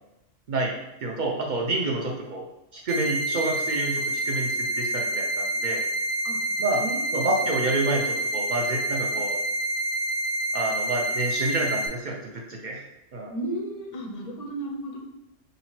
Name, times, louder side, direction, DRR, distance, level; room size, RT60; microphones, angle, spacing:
voice 1, 1.0-2.4 2.7-5.8 6.6-6.8 7.1-9.4 10.5-12.8 13.1-13.3, right 2 dB, 60° right, 0 dB, 0.5 m, -28 dB
sound 1, 2.9-11.9, right 1 dB, 85° right, 1.0 m, -28 dB
voice 2, 6.7-7.9 13.3-15.0, right 1 dB, 45° left, 0 dB, 0.6 m, -35 dB
3.9 x 2.8 x 3.0 m, 0.89 s
omnidirectional pair, 1.2 m